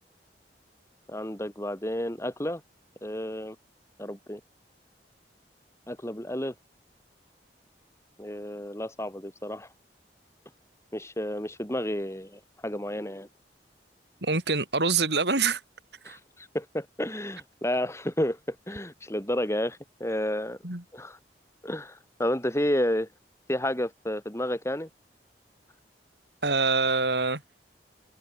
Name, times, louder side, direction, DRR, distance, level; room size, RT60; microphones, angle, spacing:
voice 1, 1.1-2.6 3.0-3.6 4.0-4.4 5.9-6.5 8.2-9.7 10.9-13.3 16.0-20.6 20.9-21.2 21.6-23.1 23.5-24.9, left 1 dB, 15° left, 7.3 m, -31 dB
voice 2, 14.2-15.6 16.0-16.2 20.6-20.8 26.4-27.4, right 4 dB, 70° right, 4.1 m, -25 dB
open air
head